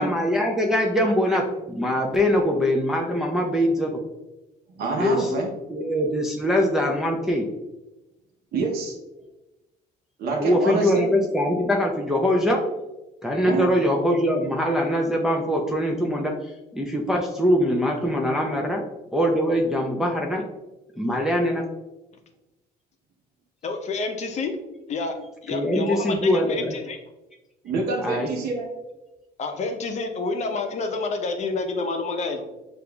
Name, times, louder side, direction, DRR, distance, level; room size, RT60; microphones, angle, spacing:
voice 1, 0.0-4.0 5.0-5.4 5.7-7.5 10.4-12.6 13.2-18.8 19.1-20.4 21.0-21.6 25.5-26.7 28.0-28.3, equal, 5° right, -1 dB, 0.5 m, -23 dB
voice 2, 4.7-5.5 8.5-8.9 10.2-11.1 13.4-13.7 27.6-28.7, right 4 dB, 65° right, 0 dB, 0.8 m, -27 dB
voice 3, 23.6-24.6 24.9-25.2 25.4-27.0 29.4-32.5, left 3 dB, 40° left, 5 dB, 0.7 m, -28 dB
6.6 x 2.5 x 2.3 m, 1.0 s
cardioid pair, 110°, 17 cm